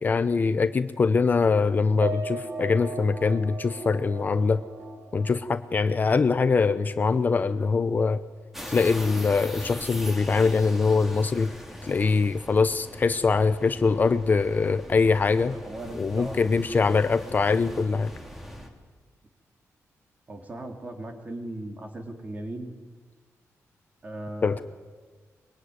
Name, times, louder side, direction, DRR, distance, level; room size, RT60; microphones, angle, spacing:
voice 1, 0.0-4.6 5.1-8.2 8.7-11.5 11.8-15.6 15.9-18.1 24.4-24.6, left 4 dB, 35° left, 11 dB, 0.8 m, -23 dB
sound 1, 1.4-5.9 6.3-6.4, right 2 dB, 85° right, 5.4 m, -45 dB
Piano, 2.0-6.5 6.9-7.0 7.4-7.5, right 4 dB, 50° right, 0.9 m, -39 dB
sound 2, 8.5-18.7, equal, 5° right, 3.0 m, -41 dB
voice 2, 15.5-16.6 20.3-22.7 24.0-24.6, right 1 dB, 30° right, 4 dB, 3.3 m, -38 dB
23.0 x 22.5 x 9.6 m, 1.5 s
wide cardioid pair, 150°, 6 cm